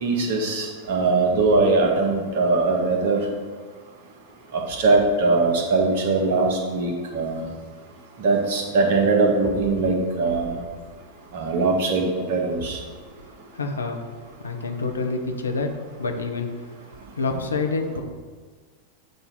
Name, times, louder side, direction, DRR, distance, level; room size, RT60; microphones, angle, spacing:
voice 1, 0.0-3.2 4.5-7.4 8.2-10.6 11.3-12.0 12.3-12.8, right 3 dB, 50° right, 1 dB, 1.2 m, -21 dB
voice 2, 13.5-14.0 14.4-16.5 17.2-18.0, left 3 dB, 75° left, 4 dB, 0.7 m, -27 dB
7.6 x 2.7 x 5.8 m, 1.5 s
figure-of-eight pair, 90°, 0 cm